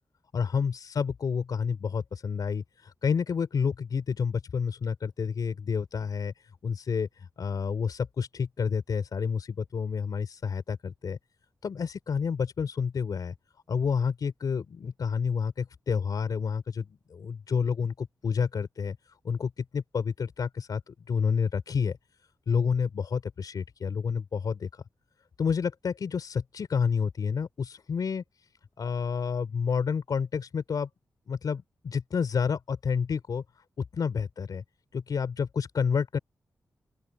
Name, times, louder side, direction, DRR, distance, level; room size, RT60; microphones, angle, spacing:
voice 1, 0.3-6.3 6.6-11.2 11.6-13.3 13.7-19.0 19.2-22.0 22.5-24.8 25.4-28.2 28.8-30.9 31.3-33.4 33.9-34.6 34.9-36.2, left 6 dB, 75° left, 4.5 m, -29 dB
open air
wide cardioid pair, 100°, 7 cm